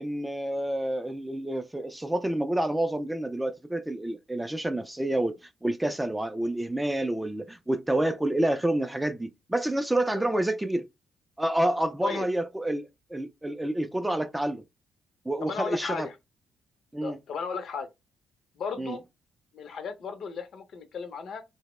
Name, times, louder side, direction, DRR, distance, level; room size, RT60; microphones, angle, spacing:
voice 1, 0.0-10.9 11.4-14.6 15.3-16.1 16.9-17.2 18.8-19.0, right 1 dB, 10° right, 0.3 m, -28 dB
voice 2, 15.4-16.1 17.0-17.9 18.6-19.0 19.5-21.4, left 5 dB, 65° left, 0.6 m, -35 dB
2.8 x 2.0 x 3.0 m
cardioid pair, 90°, 0 cm